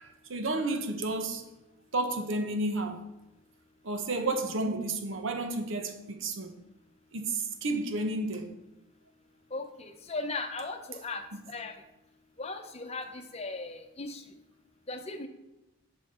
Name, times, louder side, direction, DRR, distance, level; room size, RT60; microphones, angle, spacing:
voice 1, 0.0-1.4 1.9-3.0 3.8-6.6 7.1-8.5, right 2 dB, 70° right, 1.0 m, -31 dB
voice 2, 9.5-11.2 11.5-11.7 12.4-14.2 14.9-15.3, left 3 dB, 30° left, 0.8 m, -37 dB
8.9 x 5.6 x 4.3 m
head